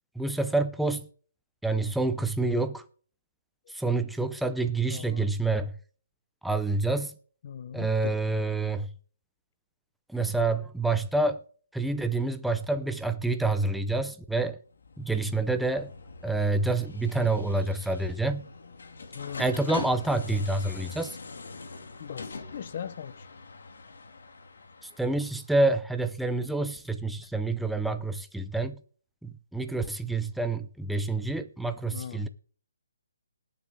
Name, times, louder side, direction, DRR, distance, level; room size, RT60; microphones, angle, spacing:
voice 1, 0.2-1.1 1.6-2.8 3.7-5.7 6.4-7.1 7.7-8.9 10.1-11.4 11.7-14.6 15.0-15.9 16.2-18.5 19.4-21.2 24.8-28.8 29.2-32.3, right 2 dB, ahead, 0.6 m, -28 dB
voice 2, 4.9-5.3 7.4-8.2 10.2-10.3 19.1-19.6 22.0-23.3 31.9-32.3, left 8 dB, 40° left, 0.9 m, -40 dB
sound 1, 14.7-25.4, left 3 dB, 70° left, 2.4 m, -43 dB
20.0 x 7.0 x 3.7 m
hypercardioid pair, 165°, 0 cm